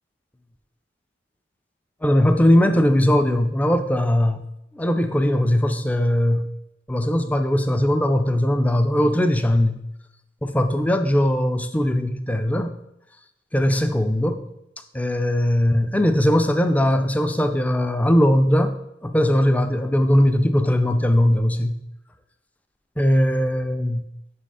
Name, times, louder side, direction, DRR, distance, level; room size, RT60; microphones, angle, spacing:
voice 1, 2.0-4.5 4.7-6.5 6.9-9.8 10.4-12.7 13.5-14.5 14.9-21.8 23.0-24.0, left 1 dB, 10° left, 9 dB, 0.3 m, -20 dB
5.6 x 4.3 x 4.8 m, 0.85 s
head